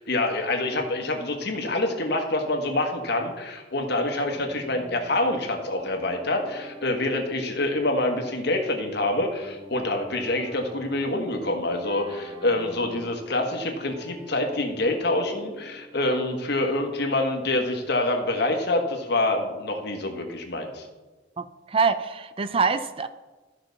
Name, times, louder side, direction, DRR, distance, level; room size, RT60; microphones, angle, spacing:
voice 1, 0.0-20.8, left 2 dB, 60° left, 3 dB, 1.4 m, -26 dB
sound 1, 4.3-16.9, equal, 50° right, 3.3 m, -46 dB
voice 2, 21.4-23.1, right 5 dB, 30° right, 11 dB, 0.4 m, -25 dB
13.5 x 5.8 x 4.1 m, 1.2 s
head